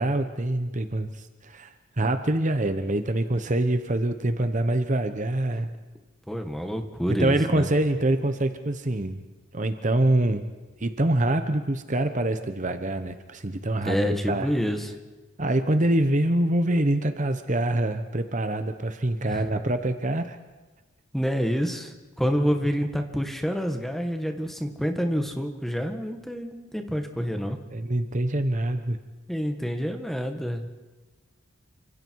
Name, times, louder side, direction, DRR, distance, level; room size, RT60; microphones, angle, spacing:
voice 1, 0.0-5.7 7.1-9.2 9.5-10.4 10.8-14.0 14.3-14.5 15.4-20.4 27.7-29.0, right 1 dB, 35° right, 9 dB, 1.0 m, -25 dB
voice 2, 6.3-7.7 13.9-14.9 19.3-19.5 21.1-27.6 29.3-30.7, equal, ahead, 5 dB, 1.7 m, -28 dB
29.0 x 26.0 x 4.7 m, 1.2 s
head